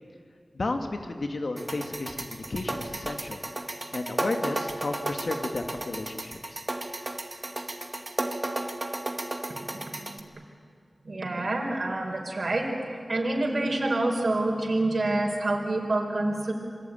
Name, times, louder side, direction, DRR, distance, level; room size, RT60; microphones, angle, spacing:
voice 1, 0.5-3.4 3.9-6.6, left 2 dB, 70° left, 5 dB, 2.3 m, -33 dB
sound 1, 1.6-10.2, right 2 dB, 35° right, 2.1 m, -34 dB
voice 2, 9.6-10.1 11.0-16.5, right 2 dB, 60° right, 0 dB, 4.2 m, -27 dB
27.5 x 22.5 x 9.4 m, 2.1 s
wide cardioid pair, 60°, 0 cm